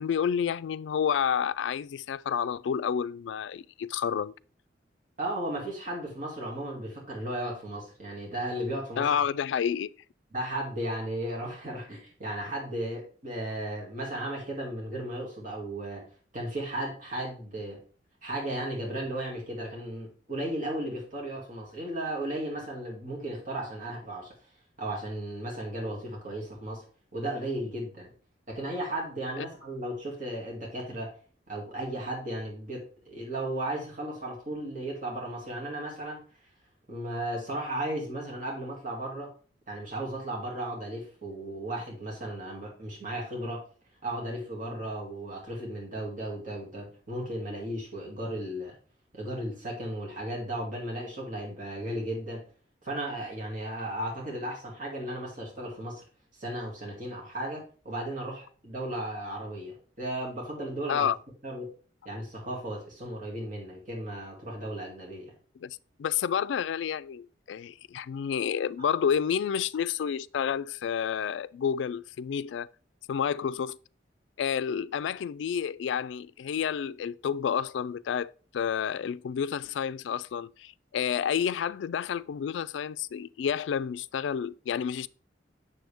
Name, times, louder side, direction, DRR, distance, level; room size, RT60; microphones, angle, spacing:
voice 1, 0.0-4.3 9.0-9.9 29.4-29.5 60.9-61.2 65.6-72.7 73.1-73.8 74.4-85.1, left 8 dB, 80° left, 0.3 m, -30 dB
voice 2, 5.2-9.1 10.3-16.0 16.3-17.8 18.2-24.3 24.8-26.8 27.1-28.1 28.5-31.1 31.5-36.2 36.9-39.3 39.7-43.6 44.0-48.7 49.1-52.4 52.8-56.0 56.4-61.1 61.4-61.7 62.0-65.3, right 1 dB, 45° right, 2.4 m, -35 dB
7.8 x 6.8 x 3.4 m
head